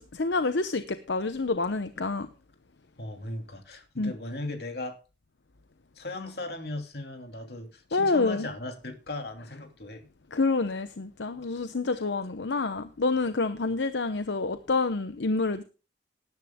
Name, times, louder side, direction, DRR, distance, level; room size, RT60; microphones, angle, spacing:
voice 1, 0.0-2.3 4.0-4.1 7.9-8.5 10.3-15.6, left 3 dB, 75° left, 0.8 m, -28 dB
voice 2, 3.0-5.0 6.0-10.1, left 2 dB, 60° left, 2.8 m, -37 dB
19.5 x 10.5 x 2.2 m
head